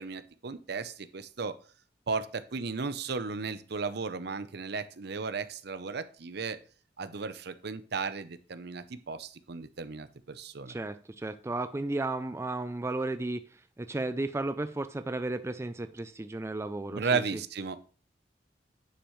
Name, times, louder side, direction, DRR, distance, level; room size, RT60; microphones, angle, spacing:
voice 1, 0.0-1.6 2.1-6.6 7.0-10.7 16.9-17.8, right 4 dB, 65° right, 12 dB, 0.7 m, -35 dB
voice 2, 10.7-13.4 13.8-17.2, right 2 dB, 15° right, 10 dB, 0.4 m, -34 dB
9.7 x 6.4 x 3.1 m, 0.39 s
head